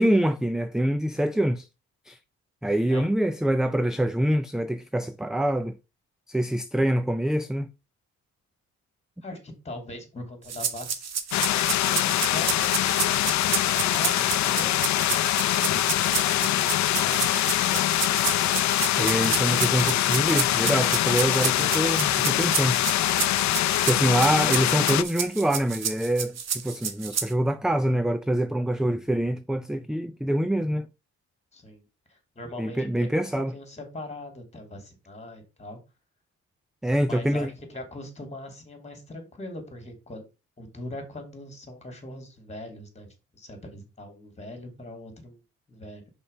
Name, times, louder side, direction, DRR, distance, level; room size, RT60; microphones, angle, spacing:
voice 1, 0.0-1.7 2.1-2.2 2.6-5.8 6.3-7.7 19.0-22.8 23.8-30.9 32.6-33.5 36.8-37.5, right 1 dB, ahead, 0.4 m, -25 dB
voice 2, 9.2-15.0 31.5-35.8 37.0-40.3 40.6-45.4 45.7-46.1, left 1 dB, 20° left, 2.8 m, -41 dB
sound 1, 10.5-27.3, right 7 dB, 60° right, 1.2 m, -31 dB
sound 2, 11.3-25.0, left 14 dB, 65° left, 0.5 m, -24 dB
5.4 x 4.3 x 5.4 m
cardioid pair, 90°, 30 cm